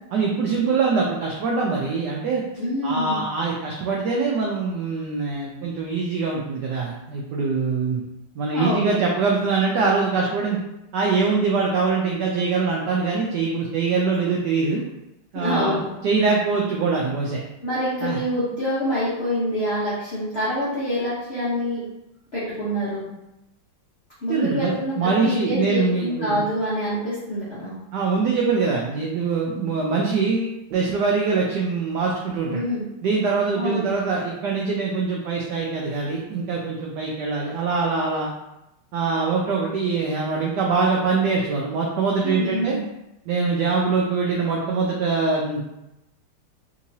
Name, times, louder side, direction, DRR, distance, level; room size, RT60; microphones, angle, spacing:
voice 1, 0.1-2.4 2.8-8.0 8.4-10.6 10.9-14.8 15.3-17.4 18.0-18.2 24.3-26.4 27.9-32.6 33.0-38.3 38.9-42.8 43.3-45.6, right 4 dB, 85° right, -2 dB, 0.9 m, -23 dB
voice 2, 2.6-3.2 8.5-8.9 15.3-15.8 17.6-21.8 22.3-23.0 24.2-27.8 32.5-32.9 33.6-33.9 42.2-42.8, equal, 55° left, -11 dB, 0.7 m, -26 dB
3.6 x 2.9 x 2.7 m, 0.91 s
omnidirectional pair, 2.4 m